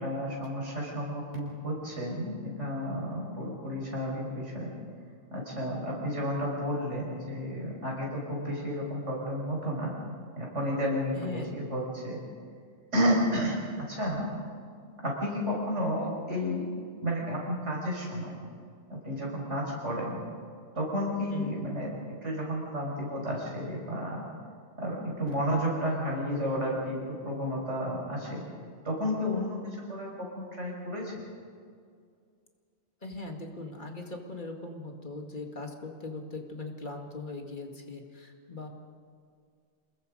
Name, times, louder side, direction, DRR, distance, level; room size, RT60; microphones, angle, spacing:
voice 1, 0.0-4.7 5.3-9.9 10.4-12.2 12.9-13.6 13.9-14.2 15.0-16.6 17.0-18.3 18.9-20.2 20.7-21.9 22.2-24.2 24.8-28.4 28.8-29.6 29.9-31.1, equal, 90° right, -3 dB, 6.4 m, -31 dB
voice 2, 11.1-11.5 21.3-21.5 33.0-38.7, left 3 dB, 45° left, 3 dB, 2.2 m, -40 dB
28.5 x 20.5 x 5.3 m, 2.2 s
omnidirectional pair, 1.2 m